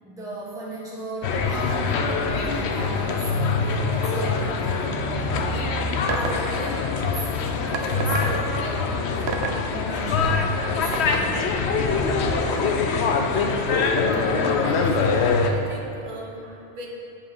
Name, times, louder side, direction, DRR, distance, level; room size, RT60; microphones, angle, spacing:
voice 1, 0.0-11.7, right 2 dB, 5° right, -7 dB, 1.4 m, -37 dB
sound 1, 1.2-15.5, left 4 dB, 85° left, 0.9 m, -24 dB
sound 2, 6.1-6.5 7.7-8.4 9.3-9.6 10.9-11.0, right 5 dB, 80° right, 1.0 m, -27 dB
voice 2, 14.6-16.9, right 2 dB, 50° right, -1 dB, 1.2 m, -39 dB
8.7 x 5.3 x 5.4 m, 2.6 s
omnidirectional pair, 1.1 m